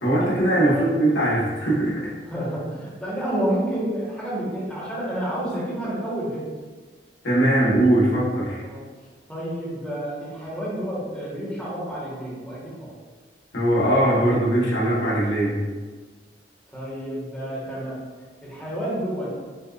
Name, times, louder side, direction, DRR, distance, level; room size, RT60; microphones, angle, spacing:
voice 1, 0.0-2.1 7.2-8.6 13.5-15.7, right 1 dB, 85° left, -7 dB, 1.3 m, -20 dB
voice 2, 2.3-6.5 8.6-8.8 9.3-12.9 16.7-18.0 18.4-19.3, right 1 dB, 5° left, -9 dB, 1.1 m, -29 dB
6.5 x 2.4 x 2.4 m, 1.4 s
head